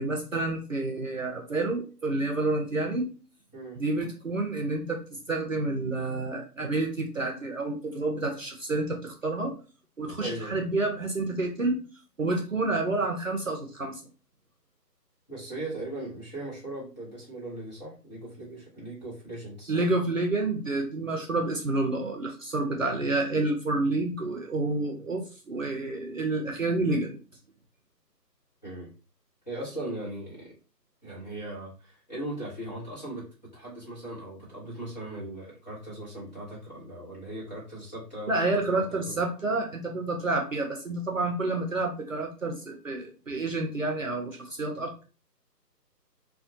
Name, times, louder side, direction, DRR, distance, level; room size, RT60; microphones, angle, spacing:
voice 1, 0.0-3.1 3.8-9.5 10.0-11.8 12.2-14.0 19.7-27.2 38.3-45.0, right 2 dB, 55° right, 3 dB, 0.5 m, -29 dB
voice 2, 10.2-10.6 15.3-19.9 28.6-28.9 29.5-30.5 31.0-33.3 33.5-39.2, right 1 dB, 25° left, -8 dB, 1.1 m, -38 dB
3.3 x 2.1 x 2.6 m, 0.35 s
hypercardioid pair, 175°, 50 cm